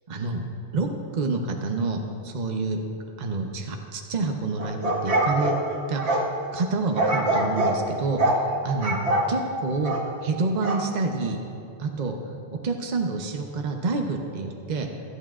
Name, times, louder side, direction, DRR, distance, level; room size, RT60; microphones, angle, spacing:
voice 1, 0.1-0.5 0.7-2.8 3.2-5.5 5.9-6.3 6.5-8.2 8.6-9.0 9.3-10.0 10.2-11.4 11.8-12.2 12.6-14.9, right 3 dB, 45° right, 2 dB, 0.9 m, -28 dB
sound 1, 4.6-6.3 7.0-7.8 8.2-8.4 8.8-9.3 9.8-10.1 10.6-10.8, right 1 dB, 70° right, 1.4 m, -24 dB
23.0 x 8.6 x 2.5 m, 2.6 s
omnidirectional pair, 1.2 m